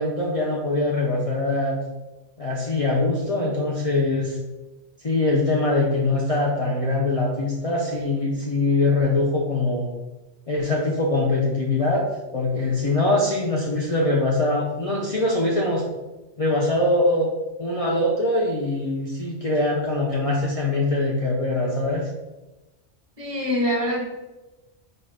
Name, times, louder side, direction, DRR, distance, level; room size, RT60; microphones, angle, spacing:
voice 1, 0.0-1.8 2.4-4.4 5.0-9.9 10.5-12.0 12.3-15.8 16.4-17.3 17.6-22.1, left 2 dB, 40° left, -3 dB, 0.6 m, -23 dB
voice 2, 23.2-24.0, equal, 40° right, -5 dB, 1.4 m, -24 dB
4.3 x 2.4 x 4.8 m, 1.1 s
omnidirectional pair, 1.1 m